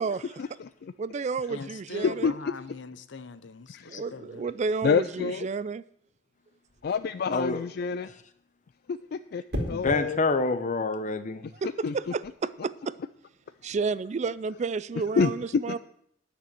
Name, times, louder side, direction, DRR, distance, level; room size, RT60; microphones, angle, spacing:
voice 1, 0.4-0.9 2.2-2.3 3.7-4.0 4.8-5.5 6.8-8.1 8.9-10.2 11.4-11.5 11.8-11.9 15.2-15.3 15.7-15.8, left 5 dB, 60° left, 0.4 m, -28 dB
voice 2, 1.0-2.3 3.9-5.8 11.6-13.0 13.6-15.8, right 4 dB, 40° right, 0.4 m, -31 dB
voice 3, 1.5-3.8 4.1-4.4, left 4 dB, 80° left, 0.7 m, -41 dB
sound 1, 6.7-7.0 9.5-10.0 12.0-12.3, equal, 65° right, 2.4 m, -34 dB
voice 4, 9.7-11.5, left 3 dB, 45° left, 0.8 m, -27 dB
10.0 x 6.8 x 7.5 m
head